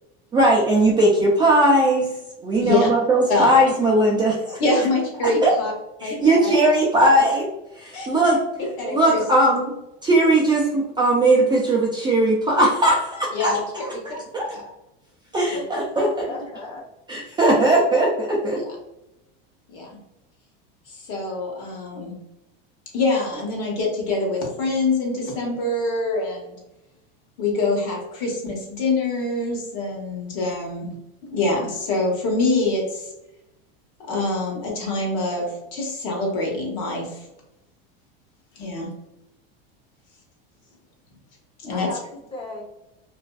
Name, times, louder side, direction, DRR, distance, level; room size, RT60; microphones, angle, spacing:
voice 1, 0.3-4.6 5.2-5.5 6.0-7.5 7.7-9.7 10.0-14.5 15.3-16.2 17.1-18.6, right 1 dB, 15° right, -4 dB, 0.3 m, -19 dB
voice 2, 4.6-5.7 6.0-6.5 7.9-8.1 8.8-9.2 13.3-13.6 13.9-14.0 14.5-14.6 15.5-15.6 18.6-18.7 19.7-20.0 20.9-22.2 22.9-26.5 27.4-31.0 31.2-33.1 34.0-37.2 38.6-38.9 41.6-41.9, left 2 dB, 55° left, -1 dB, 1.0 m, -25 dB
voice 3, 15.5-16.8 41.7-42.6, left 2 dB, 20° left, -2 dB, 0.7 m, -36 dB
2.5 x 2.2 x 2.2 m, 0.89 s
supercardioid pair, 130°, 30 cm